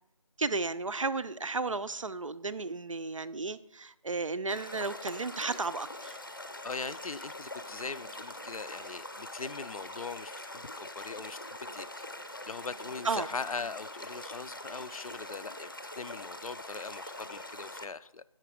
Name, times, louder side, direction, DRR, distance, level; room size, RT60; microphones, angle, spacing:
voice 1, 0.4-6.2 13.0-13.3, right 3 dB, 65° right, 0.4 m, -33 dB
sound 1, 4.5-17.9, left 1 dB, 35° left, 0.6 m, -43 dB
voice 2, 6.6-12.1 12.5-15.7 16.0-18.2, left 4 dB, 80° left, 0.4 m, -41 dB
7.8 x 5.9 x 4.7 m
figure-of-eight pair, 180°, 18 cm